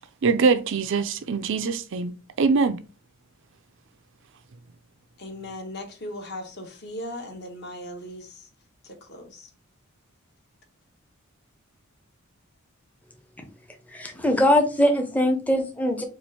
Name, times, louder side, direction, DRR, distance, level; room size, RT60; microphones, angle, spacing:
voice 1, 0.2-2.1 2.4-2.8, right 4 dB, 60° right, 0.4 m, -22 dB
voice 2, 5.2-8.5 8.8-9.5, left 1 dB, 50° left, 1.1 m, -38 dB
voice 3, 13.9-16.0, left 1 dB, 5° left, 0.6 m, -21 dB
4.5 x 2.5 x 4.2 m
head